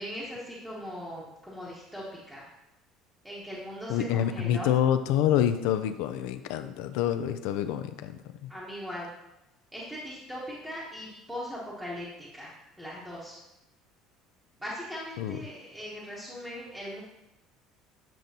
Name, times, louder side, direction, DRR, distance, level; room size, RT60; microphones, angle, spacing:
voice 1, 0.0-2.4 3.2-4.7 8.5-9.1 9.7-13.4 14.6-17.0, equal, ahead, -7 dB, 0.9 m, -39 dB
voice 2, 3.9-8.2 15.2-15.4, left 10 dB, 75° left, 10 dB, 0.4 m, -27 dB
7.6 x 5.2 x 2.8 m, 0.93 s
cardioid pair, 175°, 0 cm